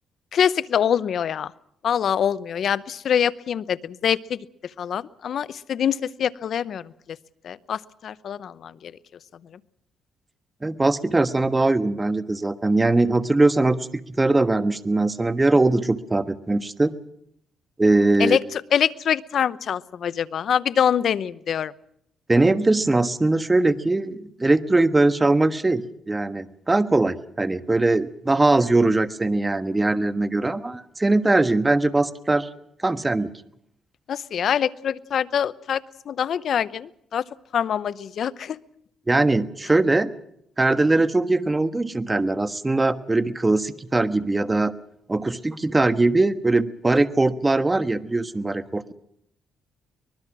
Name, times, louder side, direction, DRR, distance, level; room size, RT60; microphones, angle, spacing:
voice 1, 0.3-1.5 1.8-4.4 4.8-6.9 7.4-8.9 18.2-21.7 34.1-37.2 37.5-38.6, left 8 dB, 60° left, 17 dB, 0.8 m, -24 dB
voice 2, 10.6-16.9 17.8-18.4 22.3-32.5 32.8-33.3 39.1-40.1 40.6-44.7 45.1-48.9, right 2 dB, 20° right, 11 dB, 1.3 m, -21 dB
24.0 x 20.5 x 6.1 m, 0.71 s
cardioid pair, 90°, 0 cm